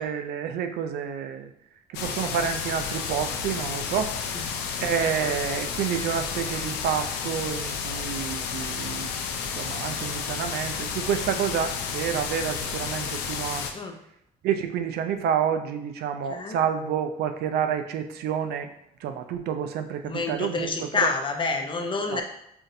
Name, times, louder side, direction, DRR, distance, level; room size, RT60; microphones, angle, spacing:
voice 1, 0.0-1.5 1.9-9.1 9.5-13.7 14.4-18.7 19.0-21.1 22.1-22.2, right 8 dB, 70° right, 7 dB, 0.5 m, -29 dB
sound 1, 1.9-13.7, left 6 dB, 80° left, 0.5 m, -31 dB
voice 2, 4.3-5.3 13.7-14.0 16.3-16.6 20.0-22.2, left 4 dB, 30° left, 4 dB, 0.6 m, -29 dB
5.7 x 2.5 x 2.7 m, 0.77 s
cardioid pair, 110°, 17 cm